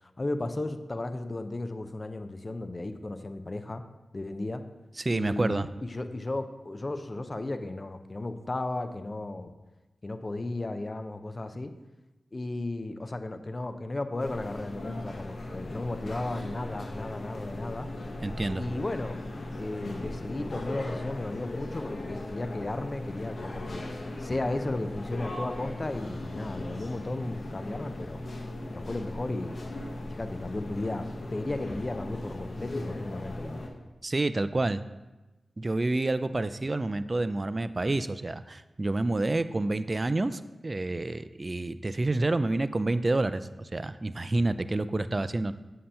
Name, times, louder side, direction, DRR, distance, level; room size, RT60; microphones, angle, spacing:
voice 1, 0.2-3.8 4.1-4.6 5.1-9.5 10.0-11.7 12.3-17.9 18.6-19.2 19.6-23.8 24.2-28.2 28.7-29.6 30.1-33.7, left 2 dB, 40° left, 9 dB, 0.5 m, -34 dB
voice 2, 5.0-5.7 18.2-18.6 34.0-34.8 35.6-45.5, right 2 dB, 40° right, 13 dB, 0.3 m, -28 dB
sound 1, 14.2-33.7, left 1 dB, 65° left, 0.8 m, -38 dB
7.5 x 2.8 x 5.6 m, 1.1 s
cardioid pair, 40°, 0 cm